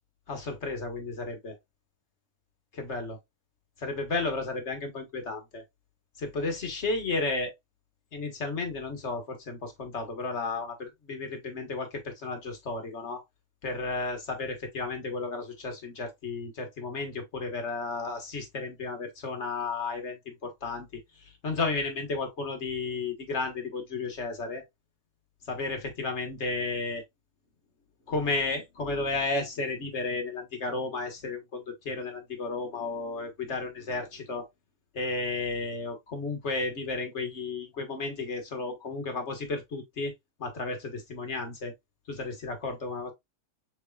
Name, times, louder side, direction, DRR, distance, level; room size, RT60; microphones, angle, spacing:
voice 1, 0.3-1.6 2.7-3.2 3.8-5.6 6.2-7.5 8.1-13.2 13.6-20.9 21.2-24.6 25.5-27.0 28.1-34.5 34.9-40.1 40.4-41.7 42.1-43.1, left 3 dB, 50° left, 1.6 m, -33 dB
6.4 x 3.3 x 2.3 m
omnidirectional pair, 1.6 m